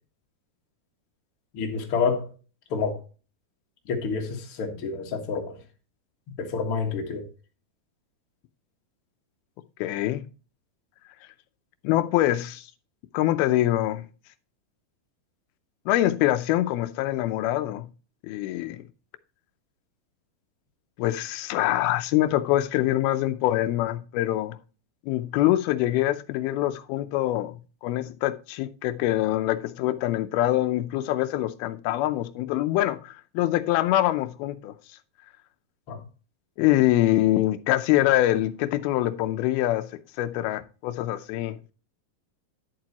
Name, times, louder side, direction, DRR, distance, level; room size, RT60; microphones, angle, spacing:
voice 1, 1.5-2.3 2.7-3.0 3.9-5.6 6.4-7.3 35.9-36.0, left 5 dB, 45° left, 2.0 m, -28 dB
voice 2, 9.8-10.2 11.8-12.7 13.1-14.0 15.9-17.9 18.3-18.8 21.0-24.6 25.1-27.6 27.8-34.7 36.6-39.9 40.2-41.6, left 14 dB, 85° left, 2.6 m, -24 dB
11.0 x 7.5 x 2.9 m
omnidirectional pair, 4.3 m